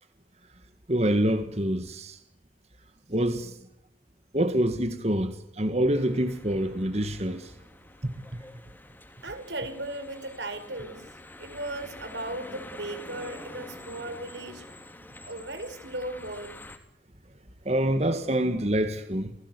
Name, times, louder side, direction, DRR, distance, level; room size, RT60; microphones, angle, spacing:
voice 1, 0.9-2.2 3.1-3.6 4.3-7.5 8.0-8.4 17.7-19.3, right 1 dB, 35° right, 1.7 m, -26 dB
sound 1, 5.9-16.8, left 1 dB, 10° left, 3.2 m, -47 dB
voice 2, 9.2-11.1 11.4-14.7 15.1-16.6, right 1 dB, 75° right, 4.5 m, -37 dB
29.5 x 18.0 x 8.2 m
head